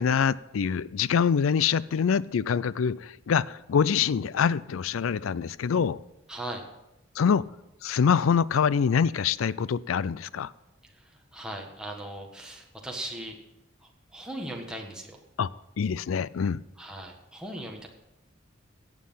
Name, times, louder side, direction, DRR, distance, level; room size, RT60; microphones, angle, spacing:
voice 1, 0.0-6.0 7.2-7.4 7.8-10.5 15.4-15.5 15.8-16.6, left 6 dB, 90° left, 0.4 m, -25 dB
voice 2, 6.3-6.6 10.8-13.3 13.8-15.2 16.8-17.9, right 1 dB, 5° right, 1.5 m, -39 dB
17.0 x 7.5 x 5.6 m
head